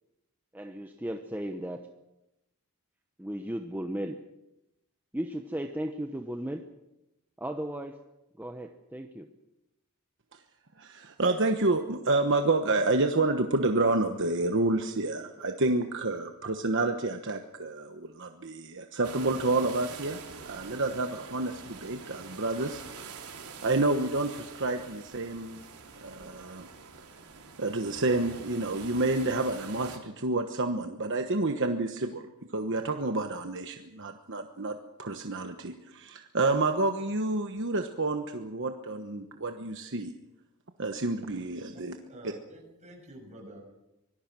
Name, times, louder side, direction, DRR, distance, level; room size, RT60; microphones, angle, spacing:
voice 1, 0.5-1.9 3.2-4.2 5.1-6.7 7.4-8.0 8.4-9.3, right 1 dB, 10° right, 5 dB, 0.9 m, -35 dB
voice 2, 10.8-20.2 20.4-22.8 23.6-25.6 26.0-26.7 27.6-32.3 32.5-40.1 40.8-42.0, right 2 dB, 55° right, 6 dB, 1.2 m, -29 dB
sound 1, 19.0-30.0, right 4 dB, 90° right, 3.5 m, -45 dB
voice 3, 41.7-43.6, right 1 dB, 30° right, 1 dB, 6.2 m, -49 dB
25.0 x 19.0 x 6.2 m, 0.92 s
head